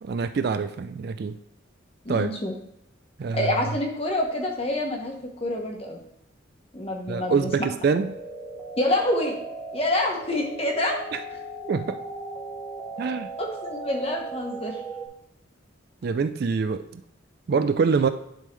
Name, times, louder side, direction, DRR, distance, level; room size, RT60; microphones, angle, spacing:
voice 1, 0.0-1.4 2.1-2.3 3.2-3.5 7.1-8.1 11.7-12.0 13.0-13.3 16.0-17.0 17.5-18.1, right 5 dB, 50° right, 10 dB, 0.3 m, -25 dB
voice 2, 2.0-2.6 3.3-5.1 5.4-6.0 6.7-7.5 8.8-9.4 9.7-11.0 13.4-14.8, left 1 dB, 30° left, 1 dB, 1.1 m, -27 dB
sound 1, 7.8-15.1, right 3 dB, ahead, 1.0 m, -37 dB
10.0 x 3.7 x 3.3 m, 0.78 s
head